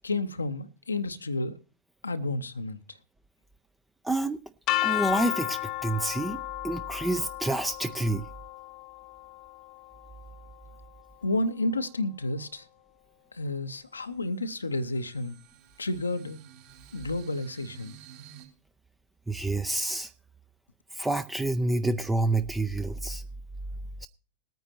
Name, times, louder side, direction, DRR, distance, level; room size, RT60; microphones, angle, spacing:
voice 1, 0.0-1.6 2.0-3.0 11.2-12.7 13.3-15.4 15.8-16.4 16.9-17.9, left 2 dB, 75° left, 0.7 m, -31 dB
voice 2, 4.0-4.4 4.8-6.4 6.6-8.2 19.3-20.1 20.9-23.2 24.0-24.1, right 2 dB, 5° right, 0.5 m, -28 dB
sound 1, 4.7-10.6, left 18 dB, 35° left, 0.7 m, -33 dB
sound 2, 13.0-13.1 13.5-18.5, right 10 dB, 50° right, 3.7 m, -52 dB
21.0 x 9.2 x 2.8 m
figure-of-eight pair, 90°, 0 cm